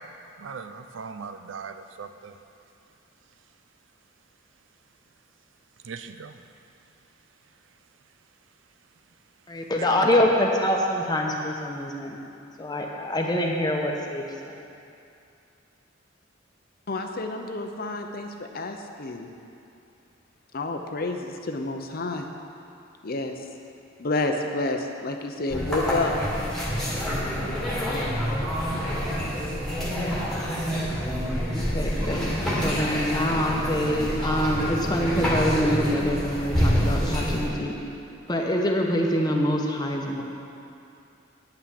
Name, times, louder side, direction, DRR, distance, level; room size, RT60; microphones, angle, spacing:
voice 1, 0.4-2.3 5.8-6.3, right 5 dB, 80° right, 9 dB, 0.5 m, -39 dB
voice 2, 9.5-12.2 12.6-14.6 31.7-37.7 38.3-40.2, equal, 20° left, 0 dB, 1.1 m, -25 dB
voice 3, 16.9-19.3 20.5-22.3 23.0-23.3 24.0-26.2, left 2 dB, 50° left, 4 dB, 0.7 m, -29 dB
sound 1, 25.5-37.5, equal, 5° left, 2.0 m, -27 dB
9.1 x 5.9 x 8.3 m, 2.6 s
head